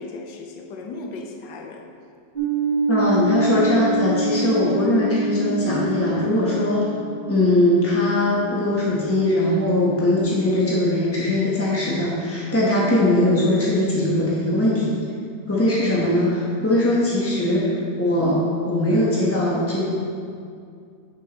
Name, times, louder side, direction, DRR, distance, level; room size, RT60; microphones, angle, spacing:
voice 1, 0.0-1.8 12.7-12.9 15.5-15.8, left 3 dB, 70° left, 2 dB, 1.4 m, -36 dB
sound 1, 2.4-10.2, right 2 dB, 35° right, 1.2 m, -27 dB
voice 2, 2.9-6.9 7.3-15.0 15.5-19.9, left 1 dB, 15° left, -6 dB, 0.5 m, -20 dB
9.7 x 6.5 x 2.9 m, 2.3 s
omnidirectional pair, 2.0 m